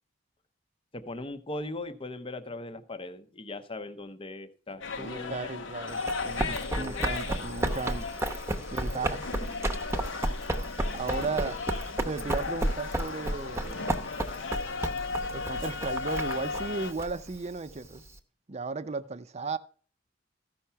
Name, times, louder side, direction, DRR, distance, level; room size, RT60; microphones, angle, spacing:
voice 1, 0.9-5.7 6.7-7.1 8.5-8.6, left 2 dB, 30° left, 0.8 m, -39 dB
sound 1, 4.8-16.9, left 4 dB, 75° left, 0.9 m, -36 dB
voice 2, 5.0-8.1 8.7-9.3 10.9-11.6 12.0-14.1 15.3-18.0 18.5-19.6, right 4 dB, 35° right, 0.6 m, -35 dB
Run, 5.9-18.1, right 1 dB, 15° right, 0.9 m, -33 dB
14.0 x 5.7 x 5.6 m
head